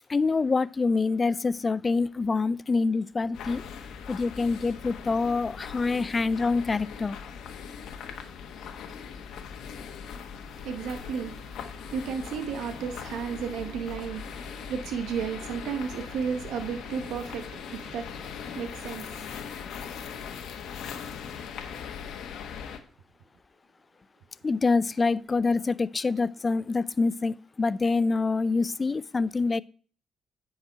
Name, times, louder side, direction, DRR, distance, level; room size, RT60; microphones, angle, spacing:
voice 1, 0.1-3.6 4.1-7.2 24.4-29.6, left 4 dB, 30° left, 0.4 m, -26 dB
sound 1, 3.3-22.8, left 7 dB, 80° left, 1.2 m, -40 dB
voice 2, 10.4-19.9, right 7 dB, 85° right, 0.9 m, -34 dB
9.5 x 4.8 x 4.5 m
cardioid pair, 90°, 0 cm